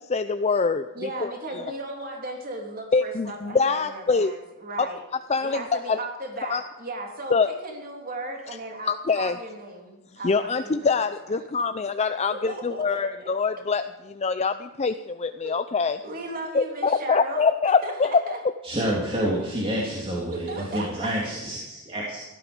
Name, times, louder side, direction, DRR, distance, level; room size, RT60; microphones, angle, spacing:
voice 1, 0.1-0.9 1.2-1.3 2.9-4.3 4.8-4.9 5.3-6.0 6.5-6.6 7.3-7.5 8.9-9.4 10.2-13.8 14.2-16.0 16.5-18.2, left 4 dB, 30° left, 9 dB, 0.5 m, -24 dB
voice 2, 0.9-5.0 5.4-10.9 11.4-11.5 12.3-13.3 15.4-15.6 16.0-18.4 20.3-21.1, right 2 dB, 40° right, 1 dB, 3.2 m, -36 dB
voice 3, 18.6-22.2, equal, 25° right, -4 dB, 3.1 m, -28 dB
16.5 x 13.0 x 5.3 m, 1.1 s
head